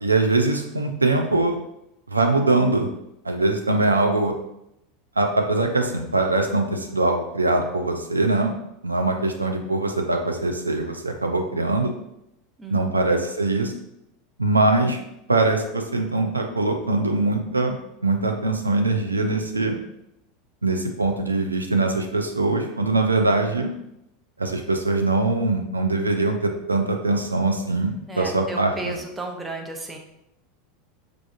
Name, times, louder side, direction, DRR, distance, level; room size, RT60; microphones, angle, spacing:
voice 1, 0.0-1.6 2.1-2.9 3.2-4.3 5.2-8.5 8.8-11.9 12.7-13.7 14.4-15.0 15.3-17.8 18.0-19.8 20.6-23.7 24.4-28.9, right 2 dB, 90° right, 3 dB, 0.3 m, -22 dB
voice 2, 12.6-13.0 28.1-30.0, right 3 dB, 15° right, 2 dB, 0.6 m, -34 dB
4.7 x 2.4 x 2.4 m, 0.83 s
figure-of-eight pair, 85°, 0 cm